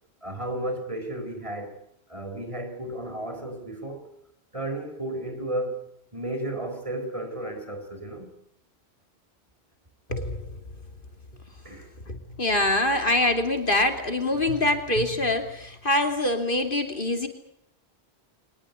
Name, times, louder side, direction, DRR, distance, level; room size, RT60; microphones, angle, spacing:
voice 1, 0.2-1.8 2.1-4.1 4.5-5.9 6.1-8.3 11.6-11.9, right 1 dB, 30° right, 4.4 m, -33 dB
voice 2, 10.1-10.6 12.1-17.3, left 1 dB, 55° left, 3.0 m, -24 dB
24.0 x 20.0 x 8.2 m
omnidirectional pair, 1.1 m